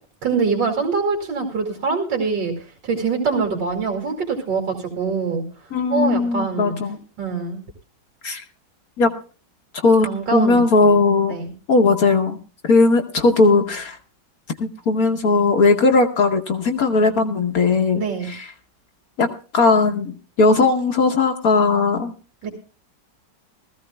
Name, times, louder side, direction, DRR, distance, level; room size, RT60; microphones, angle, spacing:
voice 1, 0.2-2.5 2.8-5.4 5.9-6.7 7.2-7.6 10.0-11.0 11.3-11.5 17.9-18.3 22.4-22.5, right 4 dB, 75° right, 1 dB, 2.9 m, -24 dB
voice 2, 5.7-7.0 8.2-8.4 9.0-9.1 9.8-11.4 11.7-12.4 12.6-14.0 14.6-18.4 19.2-19.3 19.5-22.1, left 3 dB, 55° left, 4 dB, 1.3 m, -18 dB
20.5 x 14.5 x 2.2 m, 0.37 s
omnidirectional pair, 2.0 m